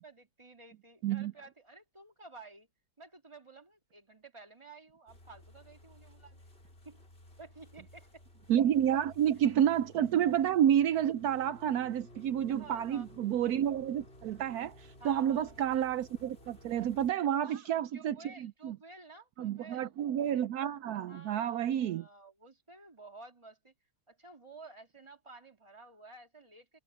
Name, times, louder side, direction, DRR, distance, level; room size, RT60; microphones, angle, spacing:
voice 1, 0.0-2.7 3.0-6.5 6.8-7.0 7.4-8.2 10.0-10.1 12.5-13.1 15.0-15.7 17.2-19.9 21.1-23.7 24.1-26.8, right 3 dB, 20° right, 2.4 m, -53 dB
sound 1, 5.1-17.1, left 1 dB, 40° left, 4.4 m, -56 dB
voice 2, 8.5-18.8 19.4-22.0, right 10 dB, 75° right, 1.1 m, -30 dB
omnidirectional pair, 1.7 m